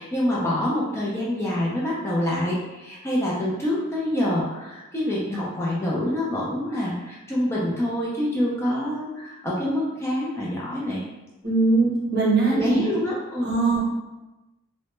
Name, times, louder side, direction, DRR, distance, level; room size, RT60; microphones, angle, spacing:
voice 1, 0.0-11.1 12.5-13.5, left 1 dB, 10° left, -6 dB, 0.3 m, -26 dB
voice 2, 11.4-12.8 13.4-13.8, right 3 dB, 55° right, -5 dB, 0.8 m, -21 dB
2.1 x 2.0 x 2.9 m, 1.0 s
head